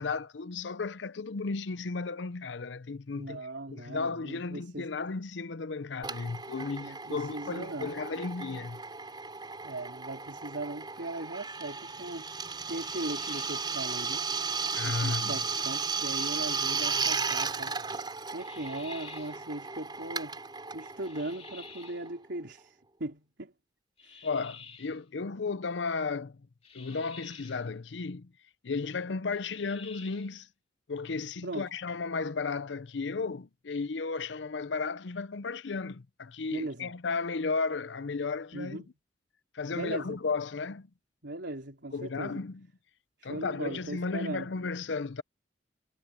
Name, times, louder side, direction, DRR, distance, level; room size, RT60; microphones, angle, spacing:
voice 1, 0.0-8.8 14.7-15.4 24.2-26.4 26.7-28.3 28.6-30.5 30.9-38.8 39.5-40.9 41.9-42.7 43.2-45.2, left 4 dB, 80° left, 0.6 m, -34 dB
voice 2, 3.2-4.9 6.8-7.9 9.6-12.3 12.7-14.3 14.8-17.8 18.3-20.4 20.7-23.5 24.0-24.3 31.4-31.7 36.5-36.9 38.5-38.9 39.7-40.2 41.2-42.4 43.2-44.5, right 2 dB, 75° right, 3.6 m, -39 dB
Drill, 6.0-22.4, right 5 dB, 25° right, 3.5 m, -35 dB
sound 1, 12.7-13.8 15.6-16.6 18.4-19.4 21.0-22.1 24.0-25.0 26.6-27.7 29.3-30.4, left 6 dB, 35° left, 2.6 m, -50 dB
head